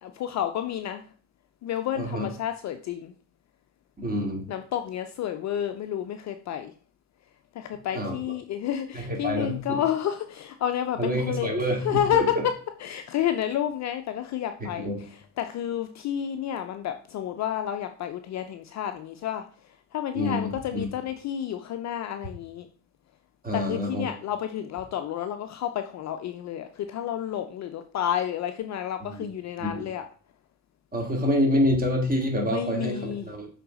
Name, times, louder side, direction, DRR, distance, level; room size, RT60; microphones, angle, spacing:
voice 1, 0.0-1.0 1.6-3.1 4.5-6.7 7.5-11.5 11.8-12.2 12.8-14.9 15.4-19.5 19.9-22.7 23.5-30.0 32.4-33.3, left 10 dB, 40° left, 8 dB, 0.6 m, -30 dB
voice 2, 1.9-2.3 4.0-4.5 7.9-8.2 8.9-9.8 11.0-12.4 14.6-15.0 20.1-20.9 23.4-24.1 29.0-29.2 29.6-29.9 30.9-33.5, equal, 20° right, 1 dB, 2.3 m, -27 dB
6.6 x 4.0 x 4.0 m, 0.41 s
hypercardioid pair, 75°, 45 cm